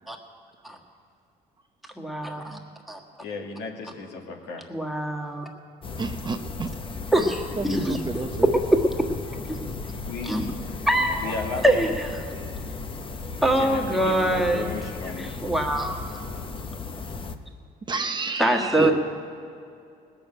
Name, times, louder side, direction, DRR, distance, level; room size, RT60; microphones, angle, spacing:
voice 1, 2.0-2.6 2.9-3.0 4.7-5.5 7.1-8.0 8.7-9.1 9.5-9.6 10.3-10.4 10.9-11.3 11.6-12.1 13.4-14.6 15.2-16.0 18.4-18.9, right 1 dB, ahead, 2 dB, 1.6 m, -23 dB
voice 2, 3.2-4.7 10.1-10.4 11.2-11.9 13.4-15.3 18.7-18.9, left 4 dB, 80° left, 1 dB, 2.1 m, -34 dB
sound 1, 5.8-17.4, left 4 dB, 30° left, 0.8 m, -35 dB
voice 3, 6.0-6.7 7.6-8.5 17.9-18.9, right 4 dB, 25° right, 6 dB, 0.8 m, -31 dB
19.0 x 6.9 x 8.9 m, 2.5 s
cardioid pair, 110°, 17 cm